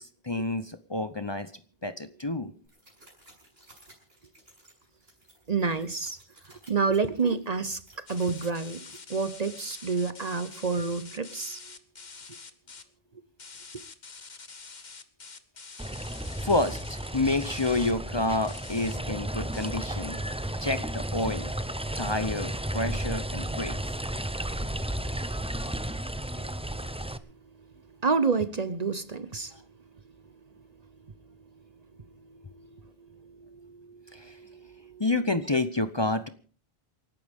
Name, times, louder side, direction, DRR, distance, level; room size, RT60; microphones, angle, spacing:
voice 1, 0.0-1.5 1.8-2.5 16.4-20.2 20.6-21.5 22.0-23.8 34.1-34.4 35.0-36.3, left 2 dB, 30° left, 11 dB, 0.8 m, -29 dB
sound 1, 2.6-9.0, right 1 dB, 75° right, 6.8 m, -57 dB
voice 2, 5.5-6.2 6.7-11.6 26.3-26.5 28.0-29.7 32.1-35.0, right 4 dB, 40° right, 13 dB, 0.9 m, -30 dB
sound 2, 8.1-12.8 13.4-17.9 18.4-19.0 19.5-19.7, left 4 dB, 45° left, 1.3 m, -46 dB
sound 3, 15.8-27.2, right 1 dB, 5° right, 0.6 m, -33 dB
28.5 x 12.0 x 3.6 m, 0.43 s
omnidirectional pair, 1.0 m